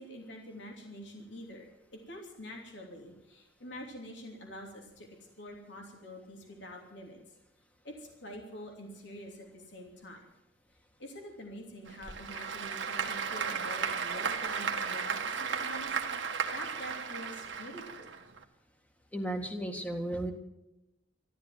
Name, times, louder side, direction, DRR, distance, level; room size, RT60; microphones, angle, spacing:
voice 1, 0.0-5.1 5.4-7.2 7.8-10.2 11.0-16.0 16.2-18.1, equal, 75° left, 1 dB, 3.0 m, -46 dB
Applause / Crowd, 11.9-18.4, right 6 dB, 80° right, 1.6 m, -35 dB
voice 2, 19.1-20.3, right 1 dB, 10° left, 4 dB, 1.7 m, -34 dB
13.5 x 12.5 x 7.6 m, 0.93 s
head